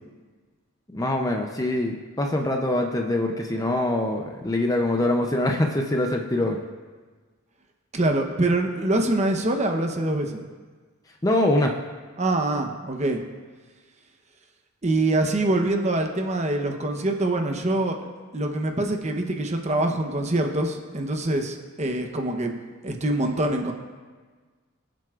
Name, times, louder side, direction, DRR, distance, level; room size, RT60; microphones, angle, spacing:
voice 1, 0.9-6.6 11.2-11.8, left 1 dB, 15° left, 2 dB, 0.6 m, -24 dB
voice 2, 7.9-10.5 12.2-13.2 14.8-18.0 18.3-22.5 22.8-23.7, right 2 dB, 30° right, 4 dB, 0.9 m, -24 dB
22.5 x 7.7 x 2.5 m, 1.4 s
head